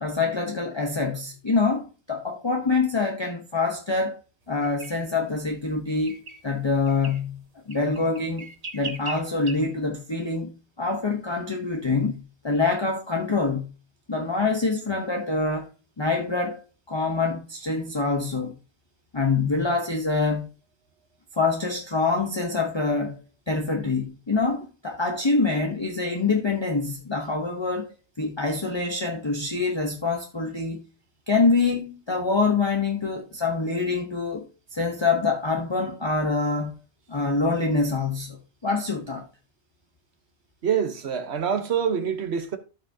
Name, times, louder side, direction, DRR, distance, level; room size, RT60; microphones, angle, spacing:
voice 1, 0.0-4.2 4.5-13.7 14.1-15.7 16.0-18.5 19.1-20.5 21.3-23.2 23.5-30.8 31.3-34.5 34.7-36.8 37.1-39.3, left 3 dB, 25° left, 0.9 m, -25 dB
sound 1, 4.6-4.9 5.9-6.4 6.9-7.2 7.7-9.5, right 3 dB, 40° right, 1.0 m, -38 dB
voice 2, 40.6-42.6, right 7 dB, 75° right, 1.3 m, -25 dB
13.0 x 6.0 x 2.7 m
omnidirectional pair, 1.1 m